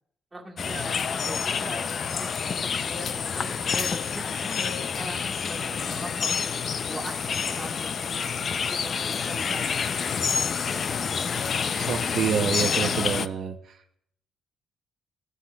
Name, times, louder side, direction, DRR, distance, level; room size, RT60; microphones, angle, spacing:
voice 1, 0.3-8.2 8.5-10.9, right 2 dB, 20° right, -1 dB, 1.6 m, -42 dB
sound 1, 0.6-13.3, left 6 dB, 50° left, 0.4 m, -28 dB
voice 2, 11.8-14.0, right 8 dB, 65° right, 5 dB, 0.5 m, -28 dB
14.5 x 7.7 x 2.2 m, 0.72 s
cardioid pair, 90°, 0 cm